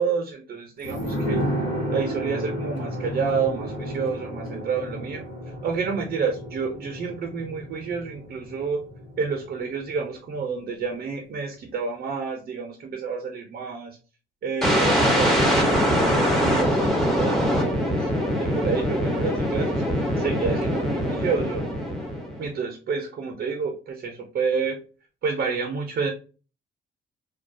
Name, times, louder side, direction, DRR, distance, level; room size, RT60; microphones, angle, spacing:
voice 1, 0.0-1.4 1.9-5.2 5.6-8.8 9.2-14.0 14.4-18.1 18.4-21.7 22.4-24.8 25.2-26.1, right 5 dB, 50° right, 3 dB, 0.5 m, -29 dB
sound 1, 0.8-10.1 10.4-10.5, equal, 75° left, 1.3 m, -32 dB
sound 2, 14.6-22.5, equal, ahead, 0.7 m, -23 dB
2.2 x 2.2 x 2.5 m, 0.34 s
cardioid pair, 90°, 20 cm